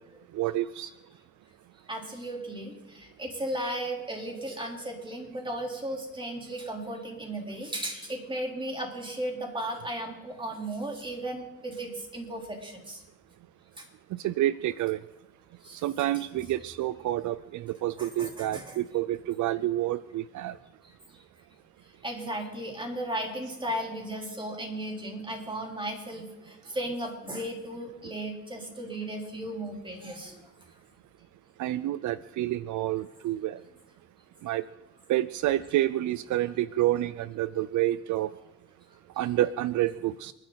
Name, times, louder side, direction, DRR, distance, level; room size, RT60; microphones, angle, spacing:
voice 1, 0.3-0.9 14.2-15.0 15.8-20.5 31.6-33.6 34.4-34.6 35.1-38.3 39.2-40.3, right 14 dB, 75° right, 16 dB, 0.5 m, -28 dB
voice 2, 1.9-13.0 13.8-13.9 15.6-15.8 18.0-18.8 22.0-30.4, right 1 dB, 15° right, 1 dB, 3.6 m, -35 dB
29.0 x 10.5 x 4.0 m, 0.97 s
cardioid pair, 90°, 30 cm